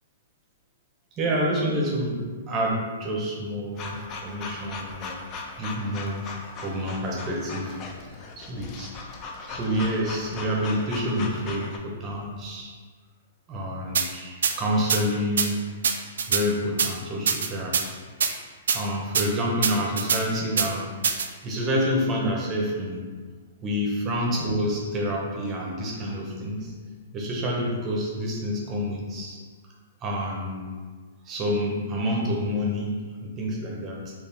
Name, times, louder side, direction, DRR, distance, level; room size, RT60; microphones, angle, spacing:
voice 1, 1.2-5.2 5.6-6.2 6.6-7.8 8.1-8.2 8.5-8.9 9.5-12.7 13.5-15.7 16.3-17.8 18.7-20.9 21.4-23.0 23.6-26.7 27.1-29.4 30.0-30.7 31.2-34.1, equal, 20° right, -2 dB, 0.7 m, -28 dB
sound 1, 3.7-11.8, left 3 dB, 25° left, 0.4 m, -38 dB
sound 2, 13.9-14.1 14.4-14.5 14.9-15.0 15.4-15.5 15.8-16.4 16.8-16.9 17.3-17.8 18.2-18.3 18.7-18.8 19.1-19.3 19.6-20.2 20.6-20.7 21.0-21.3, right 6 dB, 85° right, 0.3 m, -23 dB
3.9 x 2.4 x 3.3 m, 1.5 s
hypercardioid pair, 155°, 0 cm